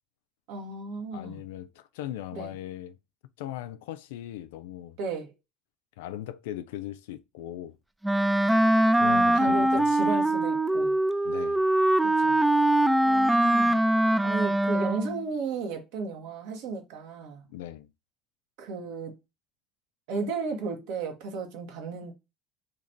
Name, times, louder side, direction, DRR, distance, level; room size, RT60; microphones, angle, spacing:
voice 1, 0.5-1.4 2.3-2.5 5.0-5.3 9.0-11.0 12.2-12.4 13.0-13.8 14.2-17.4 18.6-19.1 20.1-22.1, right 4 dB, 70° right, 1.1 m, -34 dB
voice 2, 1.1-3.0 3.4-5.0 6.0-7.8 9.0-9.9 11.2-11.6 17.4-17.9, left 12 dB, 80° left, 0.4 m, -39 dB
Wind instrument woodwind instrument, 8.0-15.2, right 1 dB, 10° right, 0.3 m, -22 dB
2.9 x 2.5 x 4.2 m
hypercardioid pair, 75°, 0 cm